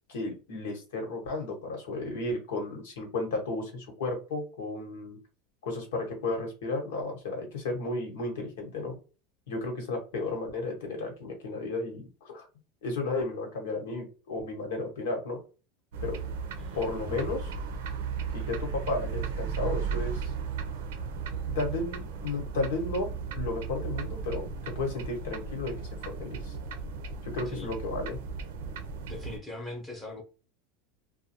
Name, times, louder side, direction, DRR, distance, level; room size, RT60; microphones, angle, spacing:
voice 1, 0.1-5.2 5.6-9.0 9.5-12.4 12.8-15.4 16.0-16.2 16.7-17.5 18.3-20.3 21.5-23.1 23.3-25.9 26.2-26.5 27.2-28.2, left 2 dB, 90° left, 1.2 m, -33 dB
sound 1, 15.9-29.4, right 5 dB, 90° right, 0.5 m, -35 dB
voice 2, 29.1-30.2, left 2 dB, 15° left, 0.9 m, -41 dB
2.5 x 2.2 x 2.8 m
supercardioid pair, 145°, 0 cm